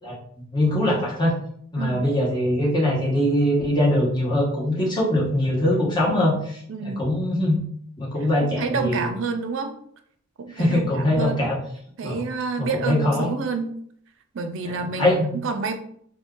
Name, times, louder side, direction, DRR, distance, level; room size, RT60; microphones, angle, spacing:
voice 1, 0.5-1.4 1.7-7.6 8.0-9.1 10.5-11.6 12.0-12.2 12.6-13.3 14.8-15.3, left 1 dB, 20° left, -6 dB, 0.9 m, -22 dB
voice 2, 6.7-7.1 8.4-9.7 10.4-11.5 12.0-13.7 14.3-15.8, right 4 dB, 60° right, 7 dB, 0.4 m, -28 dB
2.5 x 2.3 x 3.6 m, 0.65 s
head